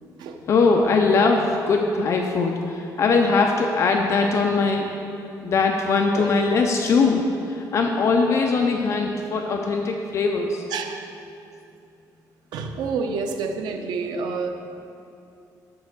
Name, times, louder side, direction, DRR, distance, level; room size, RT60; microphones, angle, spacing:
voice 1, 0.5-4.9 5.4-10.6, left 4 dB, 45° left, 2 dB, 0.5 m, -21 dB
voice 2, 10.7-11.0 12.5-14.5, right 5 dB, 85° right, 5 dB, 0.8 m, -28 dB
11.5 x 4.1 x 6.6 m, 2.7 s
cardioid pair, 165°, 7 cm